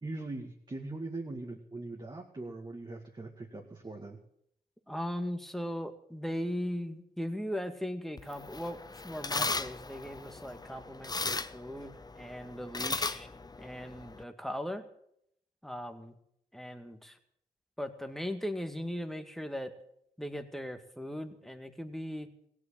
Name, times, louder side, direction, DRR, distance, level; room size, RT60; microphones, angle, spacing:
voice 1, 0.0-4.2, right 2 dB, 30° right, 0 dB, 2.2 m, -41 dB
voice 2, 4.9-8.8 9.0-13.3 13.6-14.9 15.6-16.2 16.5-17.2 17.8-19.7 20.2-22.3, equal, ahead, 7 dB, 1.9 m, -38 dB
sound 1, 8.2-14.2, left 3 dB, 25° left, 0.7 m, -37 dB
16.5 x 8.6 x 8.7 m, 0.74 s
cardioid pair, 60°, 16 cm